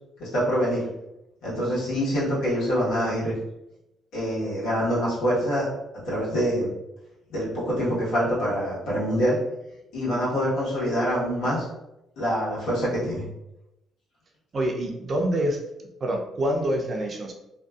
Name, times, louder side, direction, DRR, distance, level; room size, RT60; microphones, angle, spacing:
voice 1, 0.2-0.9 1.4-3.3 4.1-5.7 5.9-6.7 7.3-9.4 9.9-11.6 12.2-13.3, equal, 90° left, -7 dB, 1.2 m, -25 dB
voice 2, 14.5-15.6 16.0-17.3, right 1 dB, 45° right, 1 dB, 0.5 m, -26 dB
2.6 x 2.2 x 2.3 m, 0.88 s
cardioid pair, 90°, 0 cm